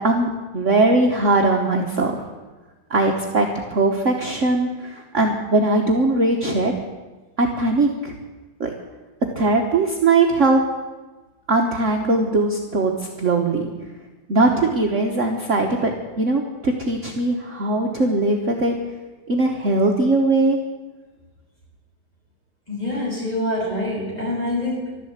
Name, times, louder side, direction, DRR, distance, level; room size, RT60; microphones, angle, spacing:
voice 1, 0.0-2.2 2.9-6.7 7.4-8.1 8.6-8.7 9.4-10.6 11.5-13.7 14.3-15.9 16.2-18.8 19.3-20.6, right 2 dB, 45° right, 1 dB, 1.4 m, -20 dB
voice 2, 22.7-25.0, left 1 dB, 20° left, -4 dB, 5.7 m, -25 dB
12.5 x 11.5 x 8.0 m, 1.2 s
omnidirectional pair, 2.0 m